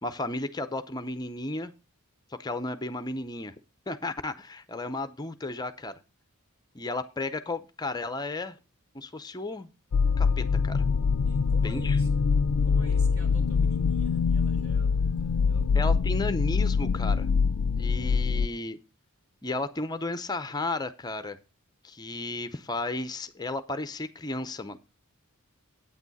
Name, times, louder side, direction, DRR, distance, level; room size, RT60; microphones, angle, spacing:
voice 1, 0.0-1.7 2.3-3.5 3.9-6.0 6.7-8.6 8.9-9.7 10.2-10.8 11.6-12.0 15.7-17.3 17.8-18.8 19.4-21.4 21.8-24.8, left 2 dB, 20° left, 0.6 m, -33 dB
sound 1, 9.9-18.5, left 5 dB, 80° left, 0.4 m, -24 dB
voice 2, 11.2-12.2 12.6-15.7 17.8-18.7, right 1 dB, 65° right, 4.3 m, -51 dB
9.0 x 8.6 x 4.0 m
head